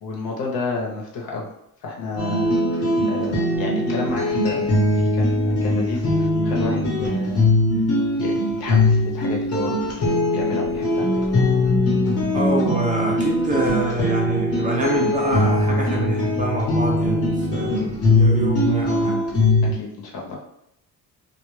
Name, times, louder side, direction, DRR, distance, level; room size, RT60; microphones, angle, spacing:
voice 1, 0.0-1.5 1.8-7.4 8.1-11.1 19.6-20.4, left 4 dB, 75° left, -2 dB, 0.8 m, -31 dB
sound 1, 2.2-19.7, left 1 dB, 40° left, 0.8 m, -21 dB
voice 2, 12.3-19.3, right 2 dB, 25° right, -2 dB, 0.4 m, -26 dB
2.2 x 2.1 x 3.1 m, 0.80 s
cardioid pair, 135°, 36 cm